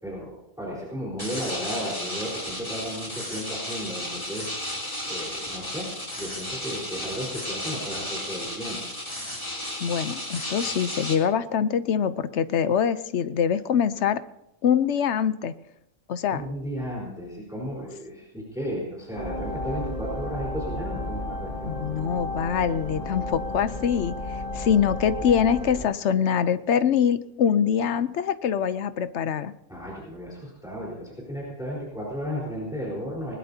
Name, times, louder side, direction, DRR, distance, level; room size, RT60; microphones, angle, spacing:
voice 1, 0.0-4.5 5.0-5.9 6.2-8.8 16.3-21.7 29.7-33.4, equal, ahead, -5 dB, 4.2 m, -34 dB
sound 1, 1.2-11.1, left 1 dB, 20° left, 2.8 m, -34 dB
voice 2, 9.8-14.2 14.6-15.5 16.1-16.4 21.6-24.1 24.5-29.5, left 8 dB, 60° left, 13 dB, 0.9 m, -24 dB
sound 2, 19.1-25.8, left 2 dB, 80° left, 4.7 m, -33 dB
20.0 x 20.0 x 2.8 m, 0.83 s
omnidirectional pair, 1.5 m